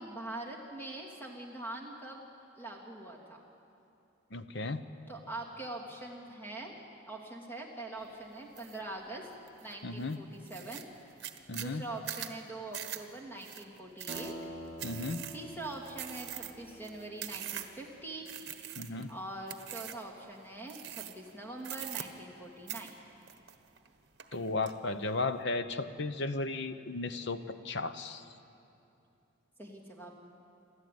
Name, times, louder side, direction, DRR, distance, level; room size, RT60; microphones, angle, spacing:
voice 1, 0.0-2.2 2.6-3.4 5.1-6.7 7.1-9.3 9.6-10.9 11.5-14.3 15.3-18.4 19.1-22.9 29.6-30.1, right 2 dB, 10° left, -1 dB, 2.8 m, -43 dB
voice 2, 4.3-4.8 9.8-10.2 11.5-11.8 14.8-15.2 18.8-19.1 24.3-28.2, left 3 dB, 60° left, 11 dB, 0.9 m, -35 dB
sound 1, 8.6-8.8 9.3-9.7 10.1-10.2 10.5-17.9 18.3-19.1 19.5-20.1 20.7-21.3 21.6-22.4 22.7-23.9 24.2-24.7, right 11 dB, 55° right, 1.3 m, -42 dB
sound 2, 14.1-18.4, right 1 dB, 30° left, 1.6 m, -47 dB
28.0 x 13.0 x 9.5 m, 2.7 s
head